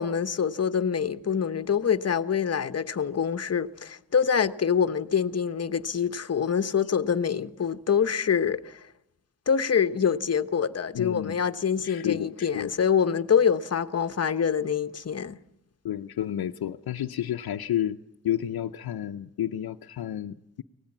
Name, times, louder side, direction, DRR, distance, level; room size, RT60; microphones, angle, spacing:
voice 1, 0.0-8.9 9.5-15.4, left 7 dB, 40° left, 1.0 m, -25 dB
voice 2, 10.9-11.4 11.8-12.7 15.8-18.0 18.2-20.6, left 11 dB, 75° left, 0.7 m, -31 dB
24.0 x 18.5 x 7.3 m
wide cardioid pair, 95°, 37 cm